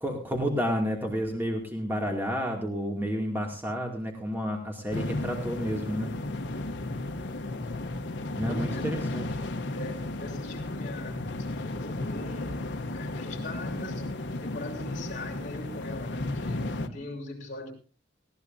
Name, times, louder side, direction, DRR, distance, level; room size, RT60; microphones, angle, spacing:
voice 1, 0.0-6.1 8.3-9.4, equal, 10° right, 1 dB, 2.4 m, -30 dB
sound 1, 4.9-16.9, left 2 dB, 65° left, 1.0 m, -34 dB
voice 2, 6.7-7.3 7.5-8.0 8.4-8.9 9.7-14.1 14.4-17.7, left 2 dB, 40° left, -1 dB, 5.2 m, -41 dB
19.5 x 17.0 x 2.7 m, 0.35 s
head